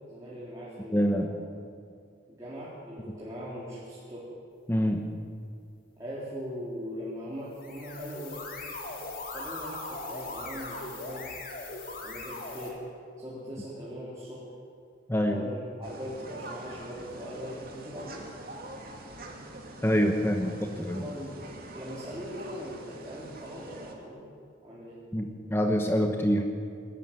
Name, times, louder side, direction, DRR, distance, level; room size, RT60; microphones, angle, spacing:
voice 1, 0.1-1.5 2.3-4.2 6.0-8.4 9.3-11.3 12.0-12.8 13.2-14.5 15.3-18.2 20.2-20.3 20.7-24.3 24.6-25.0, equal, 15° right, -9 dB, 4.1 m, -40 dB
voice 2, 0.9-1.3 4.7-5.1 15.1-15.4 19.8-21.0 25.1-26.5, equal, 15° left, 4 dB, 1.1 m, -26 dB
sound 1, 7.5-12.7, left 2 dB, 50° left, 3.3 m, -39 dB
sound 2, 15.8-23.9, right 1 dB, 50° right, 2.9 m, -45 dB
22.0 x 13.5 x 9.6 m, 2.3 s
head